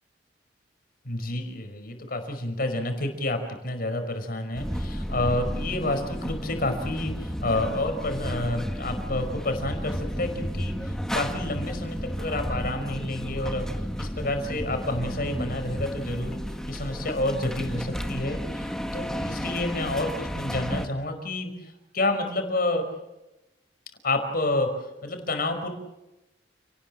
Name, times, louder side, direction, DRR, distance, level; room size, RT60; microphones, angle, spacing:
voice 1, 1.0-13.6 14.0-16.4 16.7-22.9 24.0-24.7 25.0-25.7, left 2 dB, 55° left, 6 dB, 5.2 m, -29 dB
sound 1, 4.5-20.9, equal, 5° left, 1.7 m, -32 dB
30.0 x 19.0 x 7.5 m, 0.95 s
head